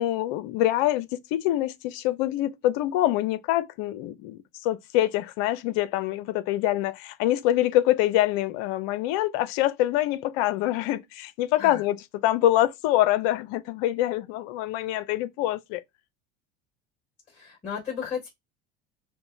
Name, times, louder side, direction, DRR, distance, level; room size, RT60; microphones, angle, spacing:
voice 1, 0.0-12.0 12.2-15.8, left 14 dB, 65° left, 0.6 m, -25 dB
voice 2, 17.3-18.3, left 7 dB, 25° left, 2.6 m, -34 dB
5.3 x 2.1 x 2.7 m
supercardioid pair, 90°, 29 cm